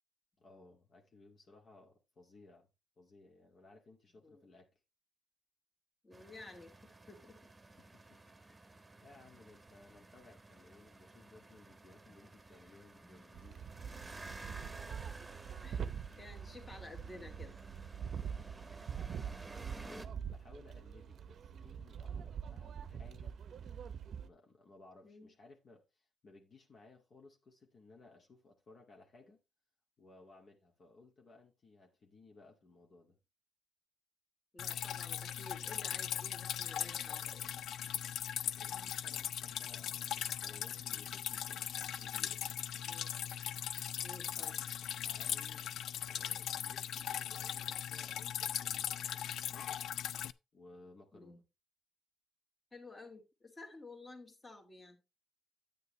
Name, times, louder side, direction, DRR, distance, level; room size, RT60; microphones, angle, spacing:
voice 1, 0.4-2.7 3.0-4.7 7.8-8.2 8.5-13.7 18.0-23.4 24.2-29.4 30.0-33.2 38.6-42.4 44.3-44.6 45.0-45.7 46.0-49.7 50.5-51.4, left 3 dB, 50° left, 2.0 m, -60 dB
voice 2, 6.0-7.5 14.2-14.8 15.6-17.5 25.0-25.3 34.5-37.4 42.8-43.1 44.0-44.6 51.1-51.4 52.7-55.0, left 2 dB, 25° left, 2.3 m, -53 dB
sound 1, 6.1-20.1, right 2 dB, 15° right, 1.3 m, -54 dB
sound 2, 13.3-24.3, right 7 dB, 60° right, 0.7 m, -44 dB
Drip, 34.6-50.3, left 10 dB, 75° left, 0.4 m, -39 dB
9.6 x 9.2 x 3.1 m
cardioid pair, 90°, 0 cm